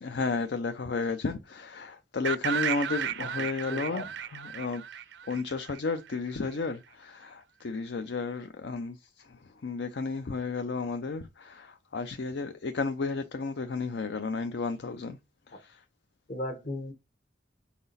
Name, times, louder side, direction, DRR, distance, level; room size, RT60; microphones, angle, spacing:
voice 1, 0.0-4.8 5.3-15.2 15.5-15.8, left 4 dB, 65° left, 0.5 m, -33 dB
sound 1, 2.2-6.1, right 8 dB, 70° right, 0.5 m, -34 dB
voice 2, 3.2-4.1 15.5-15.6 16.3-16.9, left 1 dB, 50° left, 1.2 m, -37 dB
5.9 x 3.9 x 4.0 m
head